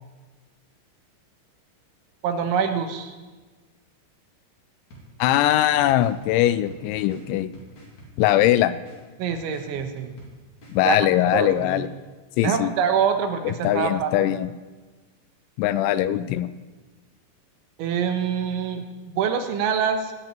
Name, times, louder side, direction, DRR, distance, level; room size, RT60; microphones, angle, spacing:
voice 1, 2.2-3.1 9.2-10.1 10.8-11.0 11.3-11.9 12.4-14.1 17.8-20.1, right 7 dB, 80° right, 6 dB, 3.6 m, -25 dB
sound 1, 4.9-11.9, right 1 dB, 40° left, 4.5 m, -48 dB
voice 2, 5.2-7.5 8.2-8.8 10.7-11.9 12.4-12.7 13.4-14.5 15.6-16.5, left 13 dB, 85° left, 13 dB, 2.9 m, -21 dB
19.0 x 7.7 x 9.1 m, 1.3 s
omnidirectional pair, 5.5 m